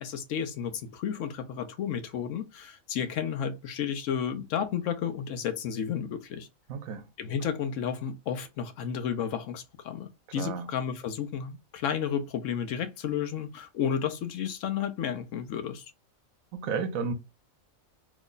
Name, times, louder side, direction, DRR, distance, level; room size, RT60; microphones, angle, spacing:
voice 1, 0.0-6.5 7.2-15.9, left 8 dB, 70° left, 0.9 m, -32 dB
voice 2, 6.7-7.0 10.4-10.7 16.5-17.1, right 5 dB, 85° right, 1.0 m, -32 dB
3.1 x 2.1 x 3.7 m
omnidirectional pair, 1.4 m